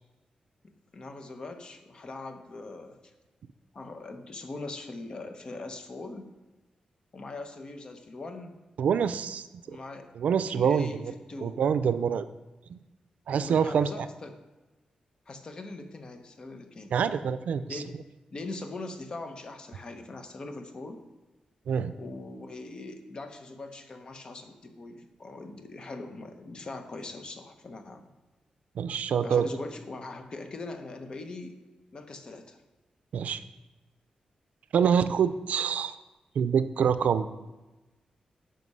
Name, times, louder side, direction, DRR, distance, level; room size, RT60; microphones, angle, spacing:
voice 1, 0.9-3.0 3.7-6.3 7.1-8.5 9.7-10.1 10.5-11.0 11.3-11.6 13.4-14.4 15.3-16.9 17.7-18.0 18.3-21.0 22.0-28.1 29.2-31.6 31.9-32.6, left 2 dB, 35° left, 6 dB, 0.9 m, -41 dB
voice 2, 8.8-9.8 10.2-11.1 11.4-12.3 12.7-12.8 13.3-14.0 16.9-17.8 21.7-21.9 28.8-29.5 33.1-33.4 34.7-35.9 36.4-37.4, right 7 dB, 80° right, 13 dB, 0.4 m, -26 dB
9.5 x 6.0 x 5.5 m, 1.1 s
wide cardioid pair, 170°, 2 cm